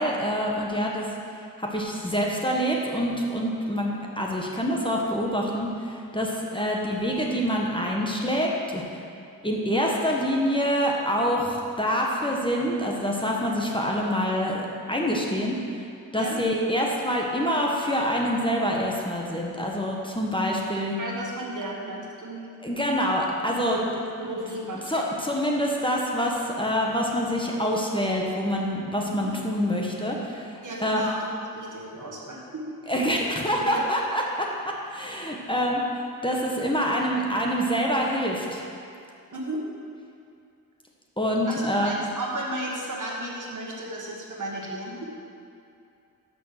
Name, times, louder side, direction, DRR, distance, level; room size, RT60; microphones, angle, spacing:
voice 1, 0.0-8.8 9.4-15.6 16.1-20.9 22.6-23.8 24.9-31.0 32.9-38.6 41.2-41.9, equal, 15° left, -2 dB, 1.2 m, -26 dB
voice 2, 21.0-22.5 23.5-23.9 24.2-24.8 29.0-29.4 30.6-31.3 31.5-33.0 33.6-33.8 39.3-39.6 41.5-45.1, right 1 dB, 55° right, -2 dB, 1.6 m, -34 dB
6.0 x 5.8 x 6.6 m, 2.5 s
cardioid pair, 50°, 37 cm